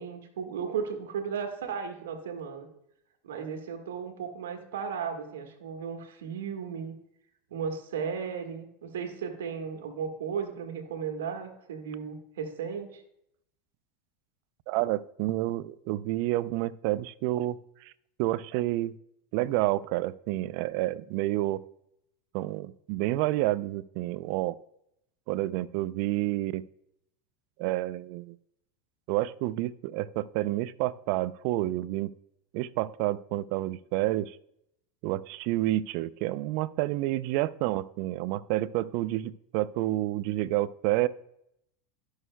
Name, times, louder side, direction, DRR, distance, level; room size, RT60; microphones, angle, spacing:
voice 1, 0.0-2.7 3.2-6.9 7.5-13.0, right 6 dB, 80° right, 4 dB, 1.7 m, -35 dB
voice 2, 14.7-17.6 18.2-18.9 19.3-21.6 22.3-24.6 25.3-26.6 27.6-28.4 29.1-32.1 32.5-34.4 35.0-41.1, right 16 dB, 60° right, 18 dB, 0.4 m, -29 dB
17.0 x 6.5 x 2.2 m, 0.77 s
hypercardioid pair, 95°, 0 cm